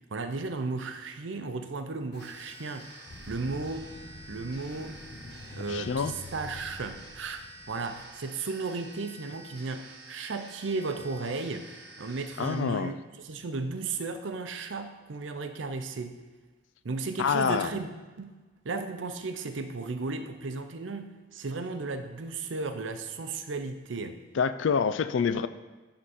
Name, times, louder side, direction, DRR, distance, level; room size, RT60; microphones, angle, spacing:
voice 1, 0.1-2.9 3.3-3.9 4.3-5.0 5.5-16.2 16.8-17.9 18.2-18.3 18.6-24.2, right 3 dB, 85° right, 8 dB, 0.6 m, -35 dB
sound 1, 2.1-8.1, left 2 dB, 55° left, 0.7 m, -47 dB
sound 2, 2.2-12.6, right 2 dB, 60° right, 1.1 m, -49 dB
voice 2, 5.7-6.1 12.4-13.0 17.2-17.7 24.3-25.5, left 6 dB, 85° left, 13 dB, 0.4 m, -27 dB
11.0 x 3.8 x 4.2 m, 1.3 s
head